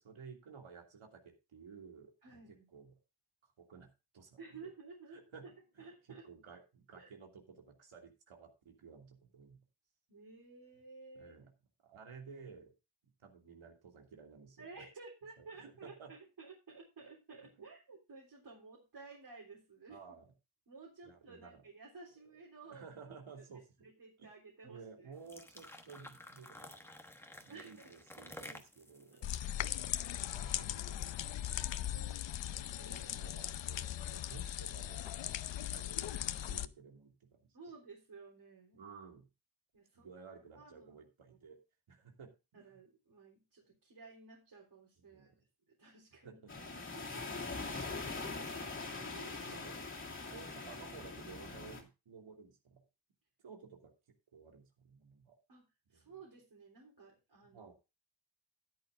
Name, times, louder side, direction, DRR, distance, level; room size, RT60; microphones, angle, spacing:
voice 1, 0.0-2.4 2.7-3.0 3.4-4.7 5.1-5.4 5.7-5.8 6.2-9.6 11.1-11.5 11.8-12.7 13.0-14.9 15.4-16.1 19.9-20.3 21.0-21.6 22.2-23.6 24.2-24.3 24.6-26.9 27.4-29.7 30.1-32.2 33.1-35.3 35.7-37.6 38.7-39.3 39.9-41.6 41.9-42.8 45.0-45.4 46.2-46.7 47.1-47.4 48.9-49.8 50.3-52.8 53.4-53.9 54.3-55.4 55.9-56.1 57.5-57.7, right 5 dB, 80° right, 2 dB, 2.9 m, -55 dB
voice 2, 2.2-2.7 4.4-5.2 5.8-6.2 7.0-7.1 10.1-11.3 14.6-20.0 20.7-23.4 23.8-25.1 27.5-27.9 28.5-28.6 29.4-29.6 30.1-30.2 30.4-30.7 31.9-33.2 37.5-38.8 39.7-40.2 40.6-40.9 41.3-41.4 42.5-45.3 45.7-46.4 46.9-47.2 55.5-55.7 55.9-57.7, right 4 dB, 50° right, -3 dB, 3.8 m, -54 dB
sound 1, 25.1-30.4, left 1 dB, 5° left, 1.1 m, -53 dB
sound 2, 29.2-36.7, left 12 dB, 65° left, 0.6 m, -39 dB
sound 3, 46.5-51.8, left 3 dB, 25° left, 2.5 m, -42 dB
13.5 x 10.5 x 2.6 m, 0.28 s
wide cardioid pair, 150°, 48 cm